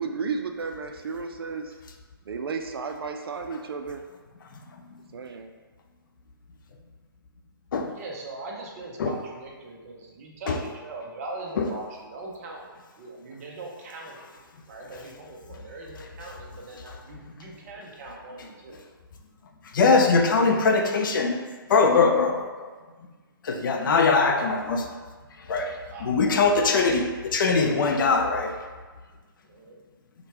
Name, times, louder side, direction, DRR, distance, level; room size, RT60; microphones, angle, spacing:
voice 1, 0.0-1.7 2.3-4.0 5.1-5.5, right 5 dB, 75° right, 5 dB, 0.5 m, -33 dB
voice 2, 7.9-12.7 13.0-14.4 14.7-18.8 25.9-26.5 29.4-29.8, right 2 dB, 40° right, -1 dB, 0.7 m, -41 dB
voice 3, 19.6-22.7 23.4-25.0 25.4-28.6, left 4 dB, 60° left, 4 dB, 0.5 m, -22 dB
4.9 x 2.2 x 2.9 m, 1.4 s
hypercardioid pair, 155°, 12 cm